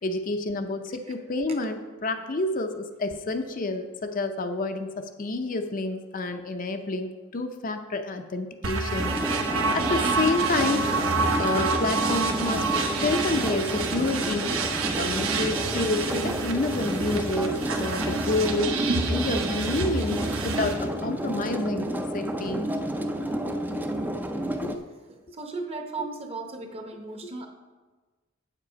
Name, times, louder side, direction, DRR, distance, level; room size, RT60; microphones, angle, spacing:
voice 1, 0.0-11.0 11.4-14.6 15.0-22.7 24.6-24.8, left 2 dB, 40° left, 6 dB, 0.5 m, -29 dB
sound 1, 8.6-20.7, right 4 dB, 80° right, 1.0 m, -28 dB
sound 2, 9.0-24.7, right 1 dB, 10° right, 0.4 m, -30 dB
voice 2, 25.1-27.5, right 3 dB, 30° right, 5 dB, 0.8 m, -36 dB
7.9 x 7.3 x 5.1 m, 1.3 s
head